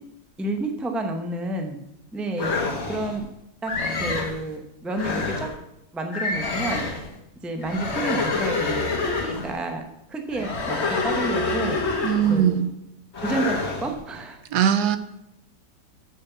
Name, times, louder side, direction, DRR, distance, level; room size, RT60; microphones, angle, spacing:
voice 1, 0.4-1.8 2.1-2.5 2.9-3.3 3.6-3.7 4.0-5.5 5.9-6.9 7.4-9.8 10.1-10.8 11.0-11.8 12.3-12.7 13.2-14.4, right 2 dB, ahead, 4 dB, 0.6 m, -29 dB
sound 1, 2.4-3.2 3.7-4.4 4.9-5.6 6.1-7.1 7.6-9.6 10.3-12.5 13.1-13.9, left 3 dB, 45° left, 1.4 m, -27 dB
voice 2, 12.0-12.7 14.5-15.0, right 9 dB, 75° right, 11 dB, 1.2 m, -20 dB
6.8 x 6.7 x 6.9 m, 0.83 s
omnidirectional pair, 1.8 m